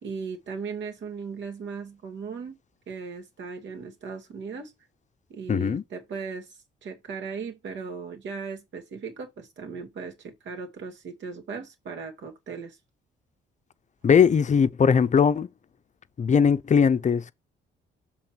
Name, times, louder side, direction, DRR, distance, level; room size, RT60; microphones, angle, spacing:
voice 1, 0.0-2.6 2.9-4.7 5.3-12.8, right 5 dB, 65° right, 2.4 m, -37 dB
voice 2, 5.5-5.8 14.0-15.5 16.2-17.3, left 6 dB, 40° left, 0.6 m, -20 dB
7.7 x 3.6 x 4.5 m
cardioid pair, 90°, 20 cm